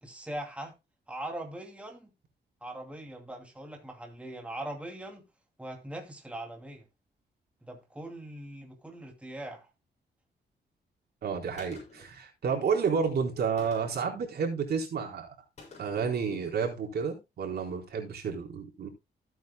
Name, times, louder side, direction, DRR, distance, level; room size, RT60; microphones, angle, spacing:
voice 1, 0.0-0.7 1.1-2.1 2.6-5.2 5.6-6.8 7.6-9.7, right 1 dB, 5° right, 2.6 m, -41 dB
voice 2, 11.2-15.3 15.8-18.9, right 6 dB, 65° right, 4.1 m, -30 dB
Gunshot gunfire, 11.6-12.2 13.6-14.1 15.6-16.1, left 3 dB, 40° left, 7.1 m, -50 dB
15.5 x 9.2 x 2.2 m
wide cardioid pair, 145°, 18 cm